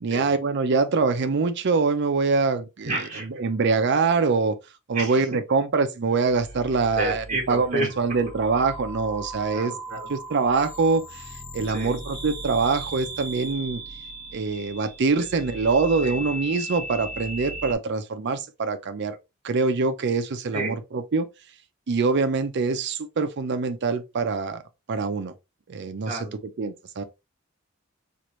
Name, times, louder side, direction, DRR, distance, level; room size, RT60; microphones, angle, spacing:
voice 1, 0.0-3.0 3.2-4.6 4.9-13.8 14.3-19.2 19.4-21.3 21.9-24.6 24.9-25.3 25.7-27.0, right 4 dB, 55° right, 0.5 m, -24 dB
voice 2, 2.8-3.3 4.9-5.2 7.0-7.9 9.5-10.1 11.7-12.0 16.0-16.2 20.5-20.8 26.0-26.4, right 2 dB, 40° right, 1.3 m, -30 dB
sound 1, 6.1-17.7, right 1 dB, 35° left, 1.2 m, -38 dB
4.6 x 2.5 x 3.0 m
head